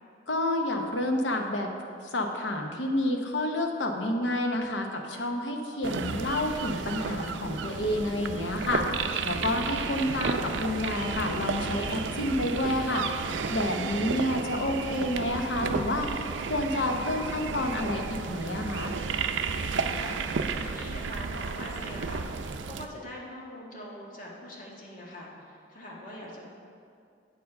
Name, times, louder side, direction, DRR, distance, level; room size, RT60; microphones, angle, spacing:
voice 1, 0.3-1.7 2.0-18.9, left 1 dB, 75° left, 3 dB, 0.9 m, -29 dB
sound 1, 5.8-22.9, right 5 dB, 85° right, 0.4 m, -33 dB
sound 2, 6.8-18.3, equal, 15° left, 1.9 m, -52 dB
voice 2, 19.5-26.4, left 1 dB, 50° left, -3 dB, 1.5 m, -43 dB
8.0 x 4.8 x 6.4 m, 2.4 s
head